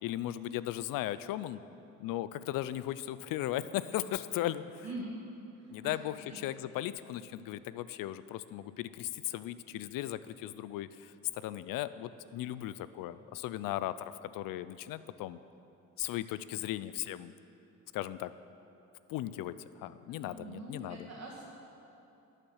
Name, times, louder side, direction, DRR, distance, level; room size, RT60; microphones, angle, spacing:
voice 1, 0.0-1.6 2.0-4.9 5.7-15.4 16.0-17.3 17.9-18.3 19.1-21.1, left 13 dB, 80° left, 15 dB, 0.5 m, -37 dB
voice 2, 4.8-5.2 5.6-6.4 20.1-21.4, right 2 dB, 50° right, -5 dB, 2.0 m, -44 dB
12.0 x 6.6 x 6.4 m, 2.9 s
cardioid pair, 75°, 33 cm